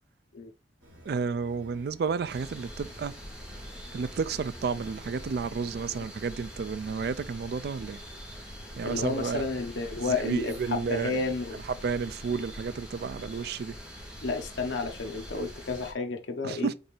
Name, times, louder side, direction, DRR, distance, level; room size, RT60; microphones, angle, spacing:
sound 1, 0.8-6.2, equal, 75° right, 1.4 m, -53 dB
voice 1, 1.1-3.1 3.9-8.0 8.8-9.4 10.1-11.2 11.8-13.7 16.4-16.7, right 5 dB, 55° right, 0.3 m, -31 dB
sound 2, 2.3-15.9, equal, 5° right, 0.9 m, -44 dB
voice 2, 8.8-11.6 14.2-16.7, left 4 dB, 75° left, 0.8 m, -31 dB
5.2 x 2.5 x 3.2 m
head